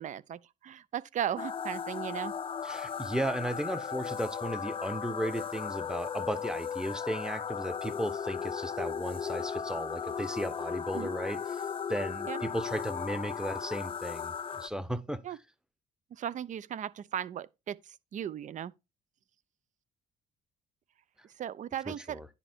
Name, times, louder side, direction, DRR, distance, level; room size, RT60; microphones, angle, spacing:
voice 1, 0.0-2.3 10.9-11.1 12.3-12.4 15.2-15.4 16.2-18.7 21.4-22.2, right 10 dB, 45° right, 0.6 m, -37 dB
sound 1, 1.4-14.7, left 7 dB, 30° left, 0.7 m, -36 dB
voice 2, 2.6-11.6 11.9-15.2 21.9-22.3, right 1 dB, 5° right, 1.0 m, -35 dB
10.0 x 4.5 x 4.4 m
cardioid pair, 110°, 17 cm